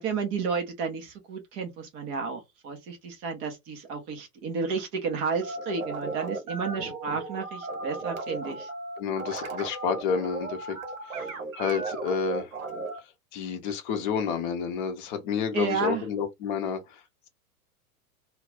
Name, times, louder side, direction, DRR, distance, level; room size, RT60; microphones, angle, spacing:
voice 1, 0.0-8.7 15.5-16.0, right 5 dB, 15° right, 0.3 m, -32 dB
sound 1, 5.4-13.0, right 3 dB, 65° right, 1.0 m, -35 dB
voice 2, 9.0-10.8 11.0-12.5 13.0-17.3, left 6 dB, 35° left, 0.6 m, -30 dB
2.2 x 2.0 x 3.4 m
figure-of-eight pair, 90°, 44 cm